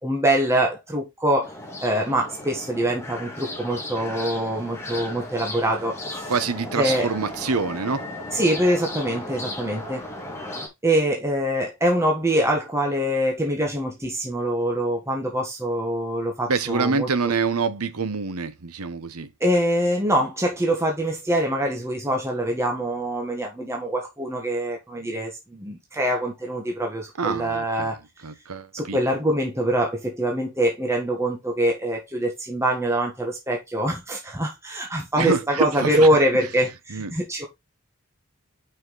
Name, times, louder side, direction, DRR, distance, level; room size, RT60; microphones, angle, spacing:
voice 1, 0.0-1.5 1.8-6.0 6.8-7.1 8.3-10.1 10.8-17.1 19.4-28.0 28.7-37.5, right 1 dB, 15° right, 1.5 m, -24 dB
sound 1, 1.4-10.7, left 1 dB, 10° left, 2.1 m, -35 dB
voice 2, 6.3-8.1 16.5-19.3 27.2-27.9 28.2-29.0 35.2-36.1 36.9-37.1, right 4 dB, 85° right, 1.0 m, -26 dB
5.8 x 5.7 x 4.0 m
head